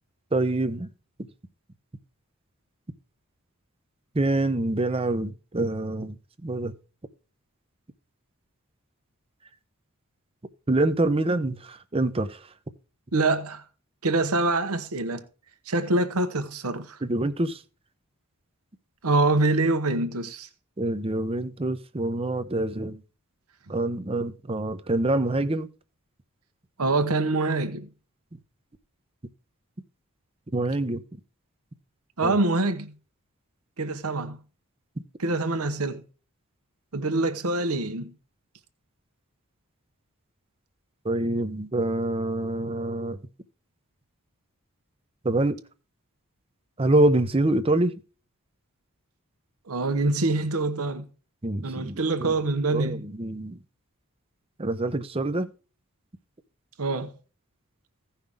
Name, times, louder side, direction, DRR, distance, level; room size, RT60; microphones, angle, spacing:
voice 1, 0.3-0.9 4.1-6.1 6.4-6.7 10.7-12.4 17.0-17.6 20.8-23.0 23.7-25.7 30.5-31.0 32.2-32.4 41.0-43.2 45.2-45.6 46.8-47.9 51.4-52.3 52.7-53.6 54.6-55.5, right 2 dB, 25° right, 0.7 m, -25 dB
voice 2, 13.1-13.6 14.0-15.2 15.7-17.0 19.0-20.5 26.8-27.9 32.2-32.9 33.8-34.4 35.2-36.0 36.9-38.1 49.7-51.1 51.6-53.0 56.8-57.1, right 2 dB, 80° right, 1.1 m, -25 dB
16.0 x 5.7 x 3.5 m
head